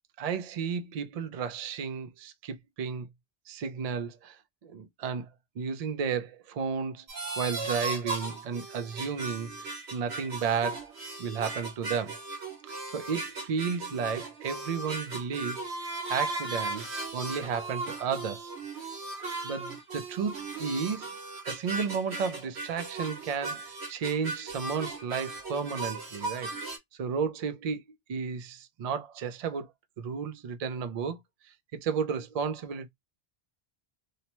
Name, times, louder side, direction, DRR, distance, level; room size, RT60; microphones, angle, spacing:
voice 1, 0.2-3.1 3.5-4.4 4.6-5.3 5.6-7.0 7.4-10.9 11.2-12.2 12.9-15.7 16.1-18.5 19.4-21.1 21.5-26.5 27.0-27.8 28.1-29.7 30.0-31.2 31.7-32.9, right 6 dB, 55° right, 0.4 m, -33 dB
sound 1, 7.1-26.8, right 3 dB, 85° right, 1.3 m, -37 dB
2.8 x 2.1 x 2.9 m
omnidirectional pair, 1.1 m